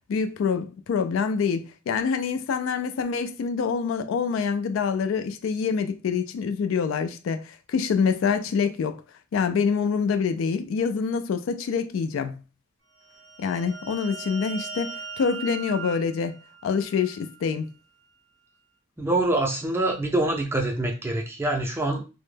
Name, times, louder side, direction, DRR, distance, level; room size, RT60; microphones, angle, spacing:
voice 1, 0.1-9.0 9.3-12.4 13.4-16.4 16.6-17.7, left 6 dB, 90° left, 0.3 m, -26 dB
sound 1, 13.0-17.5, right 4 dB, 70° right, 0.5 m, -39 dB
voice 2, 19.0-22.0, right 2 dB, 10° right, 0.4 m, -25 dB
2.1 x 2.0 x 3.2 m
head